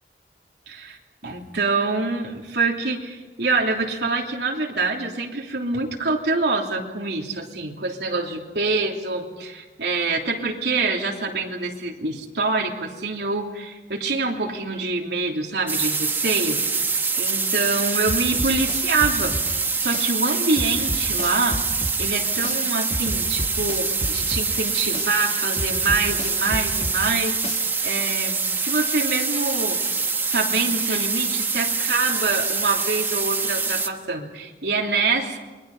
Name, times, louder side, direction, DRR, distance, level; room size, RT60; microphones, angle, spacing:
voice 1, 0.7-1.0 1.2-16.6 17.1-21.6 22.0-29.8 30.3-35.4, right 3 dB, 75° right, 0 dB, 3.1 m, -25 dB
blue noise, 15.7-33.9, right 4 dB, 10° right, 1.2 m, -25 dB
sound 1, 18.1-20.1 20.6-22.6 22.9-25.1 25.6-27.8, left 1 dB, 35° left, 2.3 m, -31 dB
30.0 x 23.0 x 5.5 m, 1.2 s
head